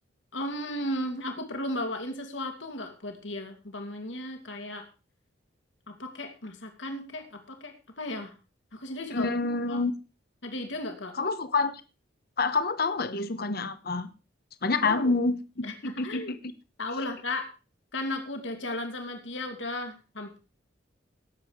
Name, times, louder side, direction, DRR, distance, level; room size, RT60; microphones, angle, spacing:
voice 1, 0.3-4.8 5.9-8.3 8.7-9.8 10.4-11.1 14.8-15.1 15.6-16.3 16.8-17.5 17.9-20.4, left 1 dB, 75° left, 2.7 m, -35 dB
voice 2, 9.1-9.9 11.1-11.7 12.4-14.1 14.6-16.4, left 3 dB, 55° left, 1.1 m, -27 dB
18.0 x 7.7 x 4.9 m
head